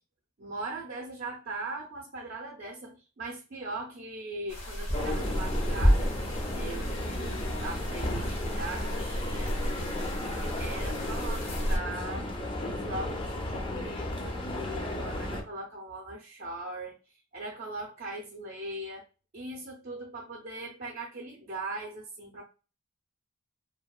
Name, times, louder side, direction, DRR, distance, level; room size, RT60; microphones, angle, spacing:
voice 1, 0.4-6.1 6.5-12.3 12.6-19.0 19.3-22.4, right 2 dB, 45° right, -1 dB, 0.4 m, -40 dB
sound 1, 4.5-11.8, equal, 65° left, 0.9 m, -31 dB
sound 2, 4.9-15.4, left 1 dB, 25° left, 0.4 m, -34 dB
2.7 x 2.2 x 2.2 m, 0.33 s
head